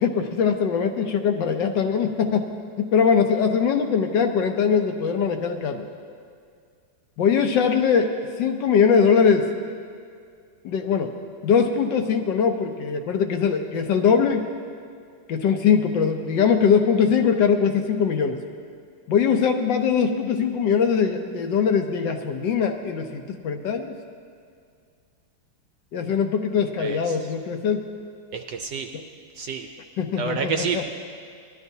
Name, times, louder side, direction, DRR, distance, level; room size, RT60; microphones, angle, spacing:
voice 1, 0.0-2.4 2.8-5.9 7.2-9.5 10.6-11.1 11.4-14.5 15.3-18.4 19.1-24.0 25.9-27.9 30.0-30.8, left 6 dB, 70° left, 5 dB, 1.3 m, -21 dB
voice 2, 26.8-27.2 28.3-28.9 29.3-29.7 30.2-30.9, right 6 dB, 70° right, 5 dB, 1.0 m, -29 dB
19.0 x 12.0 x 2.7 m, 2.2 s
omnidirectional pair, 2.2 m